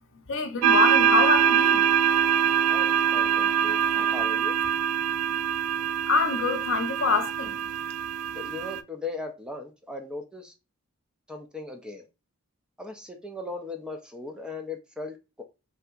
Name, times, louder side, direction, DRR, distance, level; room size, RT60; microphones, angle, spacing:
voice 1, 0.1-1.9 6.1-7.6, left 4 dB, 60° left, 0.6 m, -26 dB
sound 1, 0.6-8.8, right 8 dB, 85° right, 0.3 m, -24 dB
voice 2, 2.7-4.6 8.3-10.5 11.3-12.0 12.8-15.4, left 3 dB, 5° right, 0.4 m, -38 dB
3.3 x 2.7 x 2.3 m
head